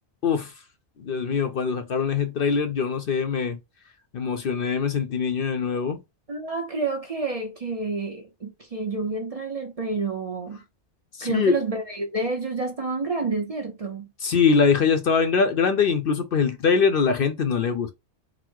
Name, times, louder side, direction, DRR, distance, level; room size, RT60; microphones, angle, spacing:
voice 1, 0.2-0.5 1.0-3.6 4.1-6.0 11.1-11.5 14.2-17.9, left 5 dB, 60° left, 0.7 m, -23 dB
voice 2, 6.3-10.6 11.2-14.1, right 3 dB, 35° right, 0.7 m, -29 dB
4.0 x 2.1 x 4.5 m
omnidirectional pair, 1.2 m